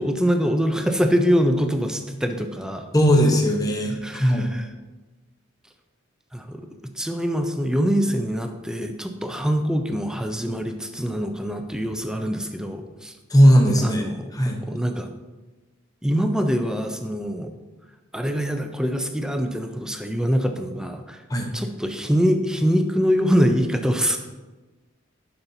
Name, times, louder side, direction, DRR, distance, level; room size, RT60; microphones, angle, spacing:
voice 1, 0.0-2.9 4.0-4.7 6.3-6.7 7.0-13.1 13.8-14.2 14.6-15.1 16.0-17.5 18.1-21.2 21.5-24.2, equal, 5° right, 6 dB, 0.4 m, -24 dB
voice 2, 2.9-4.5 13.3-14.6 21.3-21.5, equal, 15° left, 2 dB, 0.8 m, -18 dB
11.0 x 5.6 x 2.7 m, 1.2 s
head